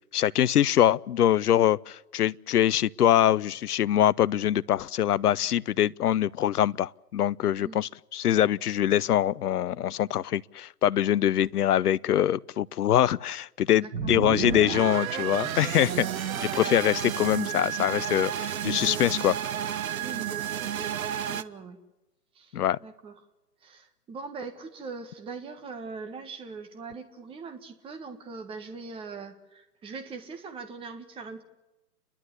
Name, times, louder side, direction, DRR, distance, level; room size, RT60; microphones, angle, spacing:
voice 1, 0.1-16.0 16.5-19.4 22.5-22.8, left 11 dB, 70° left, 0.7 m, -24 dB
voice 2, 13.7-14.1 15.9-16.7 20.0-20.9 21.2-21.8 22.3-23.1 23.6-31.4, right 4 dB, 10° right, 1.6 m, -41 dB
sound 1, 13.9-21.4, right 9 dB, 60° right, 1.1 m, -31 dB
30.0 x 12.0 x 9.6 m
hypercardioid pair, 135°, 48 cm